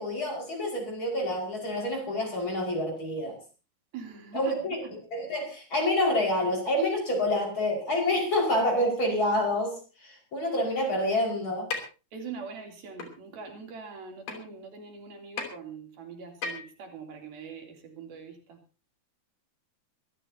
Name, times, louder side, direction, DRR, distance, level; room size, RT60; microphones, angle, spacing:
voice 1, 0.0-3.4 4.3-4.8 5.1-11.7, left 1 dB, 30° left, 0 dB, 5.9 m, -28 dB
voice 2, 3.9-4.9 12.1-18.6, right 5 dB, 80° right, 2 dB, 5.0 m, -43 dB
sound 1, 11.7-11.8 13.0-13.1 14.3-14.4 15.4-15.5 16.4-16.7, left 5 dB, 75° left, 4.7 m, -33 dB
23.5 x 14.5 x 2.8 m, 0.33 s
omnidirectional pair, 4.2 m